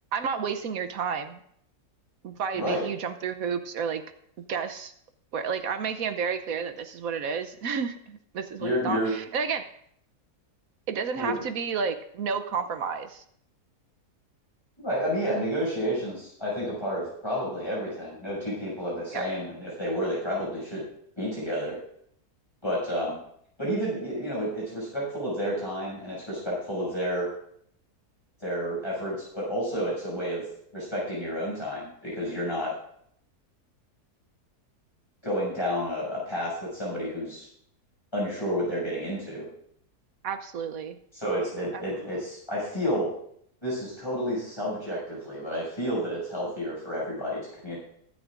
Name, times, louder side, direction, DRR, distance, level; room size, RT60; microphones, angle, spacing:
voice 1, 0.1-1.4 2.2-4.0 4.5-4.9 5.3-9.7 10.9-13.2 19.1-19.2 40.2-41.0 41.7-41.8, right 6 dB, 65° right, 10 dB, 1.1 m, -31 dB
voice 2, 8.6-9.1 11.2-11.4 14.8-20.8 21.2-21.7 22.6-23.1 23.6-27.3 28.4-30.4 30.7-32.7 35.2-37.5 38.1-39.5 41.1-43.1 43.6-47.8, equal, 15° left, -5 dB, 6.4 m, -30 dB
22.5 x 9.8 x 2.5 m, 0.68 s
omnidirectional pair, 1.7 m